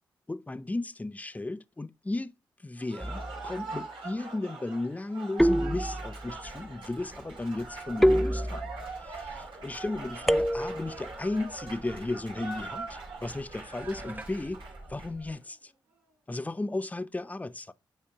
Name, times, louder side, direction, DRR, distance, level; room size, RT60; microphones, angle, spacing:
voice 1, 0.3-2.3 2.6-14.6 14.9-15.7 16.3-17.7, left 2 dB, 20° left, 0.7 m, -35 dB
Cheering / Applause, 2.8-15.4, right 3 dB, 80° right, 2.5 m, -42 dB
sound 1, 3.0-3.5 5.4-6.3 8.0-9.0 10.3-11.0, equal, ahead, 0.3 m, -26 dB
sound 2, 6.2-15.3, right 1 dB, 20° right, 1.0 m, -49 dB
8.5 x 3.2 x 4.9 m
cardioid pair, 60°, 8 cm